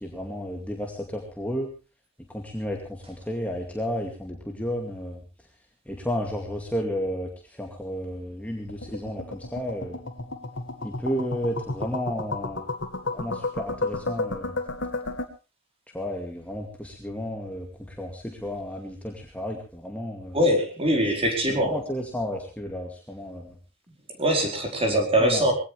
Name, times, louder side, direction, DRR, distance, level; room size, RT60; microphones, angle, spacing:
voice 1, 0.0-1.7 2.3-5.2 5.9-7.3 7.6-10.0 10.8-12.6 13.1-14.5 15.9-20.4 21.0-23.5 24.9-25.5, equal, 5° left, 1 dB, 2.3 m, -32 dB
sound 1, 8.7-15.3, left 3 dB, 55° left, 2.0 m, -32 dB
voice 2, 20.3-21.7 24.2-25.5, equal, 25° right, 3 dB, 4.6 m, -22 dB
22.0 x 17.5 x 3.3 m, 0.32 s
head